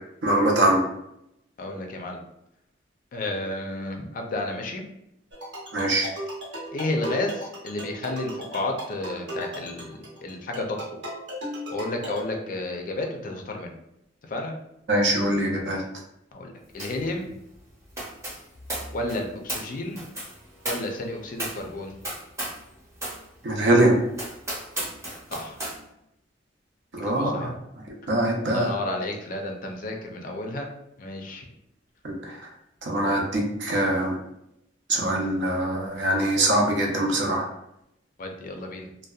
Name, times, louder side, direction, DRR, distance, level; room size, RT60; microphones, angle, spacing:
voice 1, 0.2-0.8 5.7-6.1 14.9-15.8 23.4-23.9 26.9-27.5 28.1-28.7 32.0-32.4 32.8-34.2 34.9-37.5, right 1 dB, 65° right, 0 dB, 0.6 m, -23 dB
voice 2, 1.6-2.2 3.1-4.9 6.7-10.8 11.7-13.8 14.2-14.5 16.3-17.3 18.9-20.0 20.6-21.9 25.3-25.6 27.0-27.5 28.5-30.7 31.0-31.5 38.2-38.9, left 2 dB, 45° left, 2 dB, 0.4 m, -32 dB
sound 1, 5.3-12.2, equal, 85° right, 0.9 m, -36 dB
sound 2, 16.8-17.1 17.3-22.7 23.0-23.2 23.7-23.8 24.1-25.8, right 1 dB, 15° right, 0.7 m, -35 dB
2.6 x 2.1 x 2.3 m, 0.81 s
head